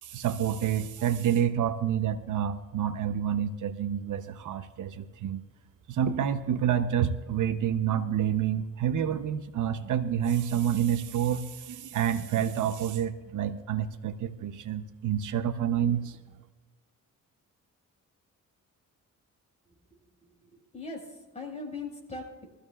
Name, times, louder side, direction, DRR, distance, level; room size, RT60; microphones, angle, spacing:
voice 1, 0.0-5.4 5.9-16.2, right 9 dB, 70° right, 9 dB, 0.8 m, -28 dB
voice 2, 20.5-22.4, left 3 dB, 20° left, -1 dB, 5.3 m, -40 dB
23.0 x 14.5 x 2.4 m, 1.2 s
cardioid pair, 125°, 31 cm